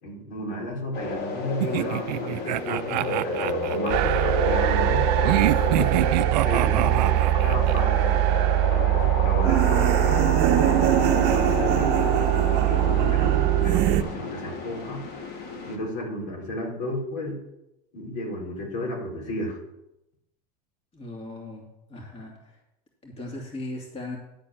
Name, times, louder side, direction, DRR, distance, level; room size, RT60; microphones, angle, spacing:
voice 1, 0.0-6.0 6.4-7.1 7.4-8.2 8.7-10.4 11.0-15.0 15.7-17.4 17.9-19.6, left 1 dB, 70° left, -2 dB, 4.1 m, -33 dB
sound 1, 0.9-15.8, left 2 dB, 50° left, 1.9 m, -30 dB
sound 2, 1.6-4.3 5.2-7.8, right 15 dB, 90° right, 0.4 m, -27 dB
sound 3, 3.9-14.0, right 16 dB, 55° right, 0.7 m, -22 dB
voice 2, 6.6-6.9 20.9-22.6 23.0-24.2, left 1 dB, 30° left, -2 dB, 2.7 m, -37 dB
11.0 x 4.4 x 7.2 m, 0.87 s
supercardioid pair, 120°, 21 cm